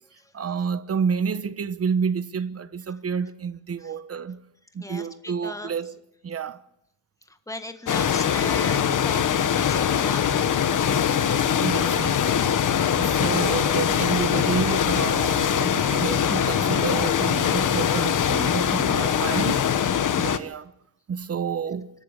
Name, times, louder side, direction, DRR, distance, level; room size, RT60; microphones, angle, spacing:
voice 1, 0.3-4.4 4.7-5.9 6.2-6.6 11.5-12.6 13.0-19.7 20.1-20.7 21.1-21.9, right 6 dB, 50° right, 1.1 m, -29 dB
voice 2, 4.8-5.7 7.5-10.7, left 2 dB, 10° left, 1.7 m, -37 dB
sound 1, 7.9-20.4, left 8 dB, 75° left, 1.3 m, -22 dB
24.5 x 13.5 x 8.3 m
wide cardioid pair, 155°, 31 cm